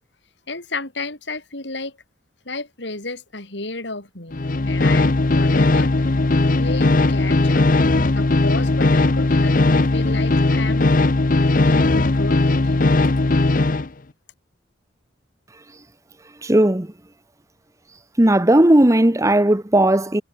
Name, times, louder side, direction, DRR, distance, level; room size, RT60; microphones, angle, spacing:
voice 1, 0.5-2.0 2.5-6.3 6.6-7.7 8.1-10.9 11.4-13.1, left 3 dB, 65° left, 4.3 m, -32 dB
sound 1, 4.3-13.9, left 2 dB, 45° left, 0.8 m, -18 dB
voice 2, 16.4-16.9 18.2-20.2, right 1 dB, 15° right, 0.9 m, -15 dB
head